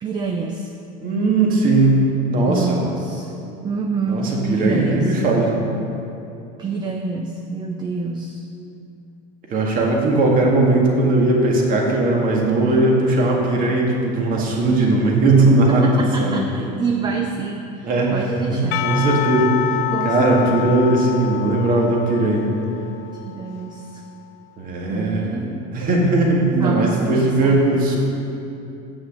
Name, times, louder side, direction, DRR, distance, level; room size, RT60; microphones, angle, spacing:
voice 1, 0.0-0.7 2.5-3.3 3.6-5.2 6.6-8.5 15.7-18.9 19.9-20.6 23.1-24.0 24.9-25.6 26.6-27.6, right 4 dB, 20° right, 3 dB, 0.6 m, -27 dB
voice 2, 1.0-2.0 2.3-2.8 4.1-5.5 9.5-16.3 17.8-22.5 24.6-25.3 25.7-28.0, right 2 dB, 40° right, -1 dB, 2.0 m, -18 dB
Percussion / Church bell, 18.7-23.9, left 14 dB, 55° left, 0.5 m, -28 dB
8.3 x 6.3 x 7.4 m, 2.8 s
supercardioid pair, 120°, 21 cm